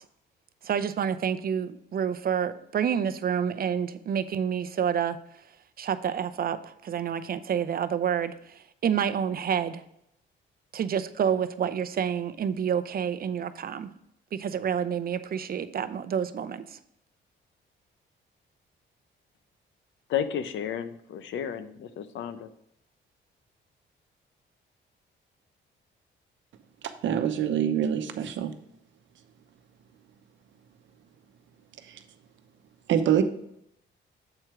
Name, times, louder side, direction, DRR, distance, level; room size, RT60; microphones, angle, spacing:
voice 1, 0.6-5.2 5.8-9.8 10.7-13.9 14.3-16.8, right 8 dB, 50° right, 12 dB, 0.6 m, -28 dB
voice 2, 20.1-22.5, left 9 dB, 70° left, 12 dB, 0.7 m, -32 dB
voice 3, 27.0-28.5 31.9-32.0 32.9-33.2, right 9 dB, 70° right, 8 dB, 0.9 m, -25 dB
7.7 x 4.5 x 4.9 m, 0.75 s
cardioid pair, 90°, 20 cm